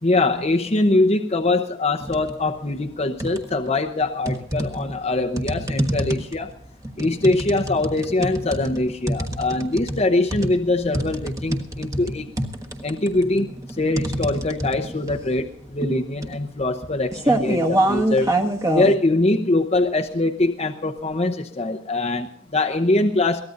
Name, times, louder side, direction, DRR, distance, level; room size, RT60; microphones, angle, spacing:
voice 1, 0.0-6.5 7.0-12.3 12.8-13.5 13.8-18.3 18.7-23.4, left 2 dB, 30° left, 3 dB, 0.8 m, -22 dB
sound 1, 2.0-2.4 2.8-3.7 4.3-18.9, right 1 dB, 15° right, 1.3 m, -25 dB
23.0 x 18.0 x 2.6 m, 0.67 s
head